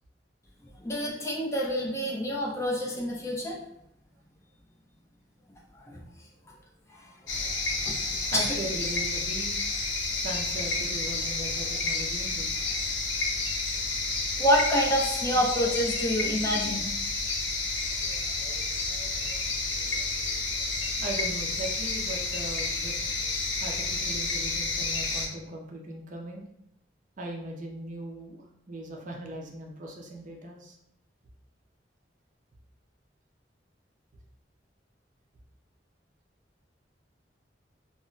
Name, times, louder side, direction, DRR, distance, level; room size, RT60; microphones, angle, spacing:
voice 1, 0.8-3.6 5.9-6.0 6.9-7.1 7.9-8.0 8.3-8.5 14.4-16.9, equal, 15° left, -2 dB, 0.5 m, -27 dB
sound 1, 7.3-25.3, left 3 dB, 90° left, 0.5 m, -30 dB
voice 2, 8.3-9.7 10.2-12.6 21.0-22.9 23.6-26.4 27.2-30.8, right 1 dB, 45° right, 0 dB, 0.5 m, -39 dB
2.2 x 2.0 x 3.8 m, 0.78 s
head